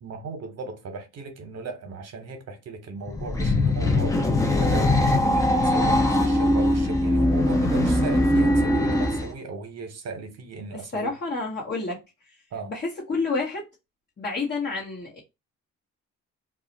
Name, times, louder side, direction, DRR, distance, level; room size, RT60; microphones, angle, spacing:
voice 1, 0.0-11.1 12.5-12.7, right 4 dB, 55° right, 1.0 m, -37 dB
sound 1, 3.1-9.3, left 1 dB, 10° left, 0.6 m, -21 dB
voice 2, 10.7-12.0 12.7-13.7 14.2-15.2, left 3 dB, 35° left, 0.9 m, -29 dB
2.4 x 2.0 x 3.9 m
cardioid pair, 90°, 30 cm